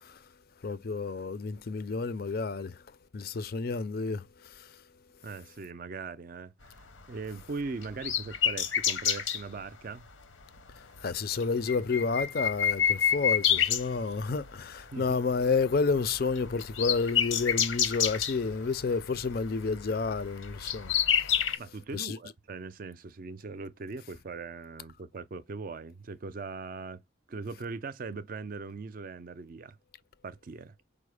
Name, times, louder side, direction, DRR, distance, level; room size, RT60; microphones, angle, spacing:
voice 1, 0.6-2.8 3.1-4.8 10.8-21.4 21.9-22.2, left 4 dB, 50° left, 0.4 m, -30 dB
voice 2, 5.2-6.7 7.1-10.1 14.9-15.2 21.6-27.0 27.3-29.8 30.2-30.7, right 4 dB, 45° right, 0.4 m, -40 dB
sound 1, 6.8-9.4 10.3-10.6 10.9-11.0 11.3-14.5 14.8-15.2 15.4-21.6, left 9 dB, 85° left, 0.9 m, -29 dB
5.0 x 2.1 x 4.8 m
head